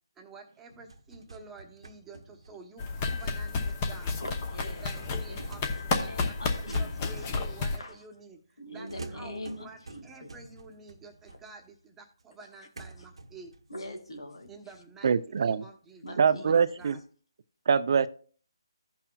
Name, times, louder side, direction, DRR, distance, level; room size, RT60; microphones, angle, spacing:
voice 1, 0.2-4.2 4.6-13.5 14.5-17.0, right 4 dB, 10° right, 1.0 m, -50 dB
sound 1, 0.7-8.3 8.9-11.8 12.2-12.3 12.8-15.6 16.1-16.2 16.8-17.0, right 3 dB, 85° right, 1.1 m, -48 dB
sound 2, 2.8-7.8, left 4 dB, 25° left, 0.9 m, -31 dB
voice 2, 4.2-4.9 5.3-7.1 7.8-8.0 8.6-10.3 13.7-14.5 16.0-16.8, left 1 dB, 85° left, 2.0 m, -42 dB
voice 3, 15.0-15.6 16.2-17.0 17.7-18.1, right 6 dB, 50° right, 0.5 m, -24 dB
15.5 x 5.7 x 2.3 m
hypercardioid pair, 160°, 3 cm